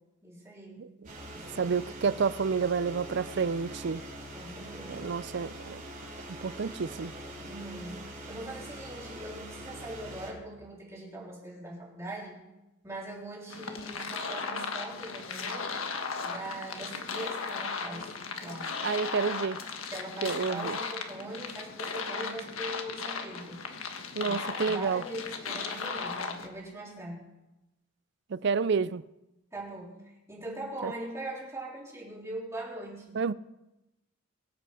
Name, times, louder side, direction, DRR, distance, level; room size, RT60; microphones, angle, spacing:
voice 1, 0.2-0.9 1.3-1.8 4.3-5.1 7.4-12.4 12.8-15.7 16.2-18.1 18.4-18.8 19.9-23.7 24.2-24.4 24.6-27.2 29.5-33.2, right 1 dB, 15° right, 3.6 m, -41 dB
sound 1, 1.0-10.3, right 1 dB, 40° right, 4.3 m, -44 dB
voice 2, 1.6-4.0 4.9-5.8 6.4-7.1 18.8-19.6 20.2-20.8 24.1-25.0 28.3-29.0 30.8-30.9 33.1-33.3, right 5 dB, 55° right, 0.4 m, -29 dB
sound 2, 13.5-26.5, left 5 dB, 85° left, 1.5 m, -36 dB
23.0 x 8.5 x 4.8 m
head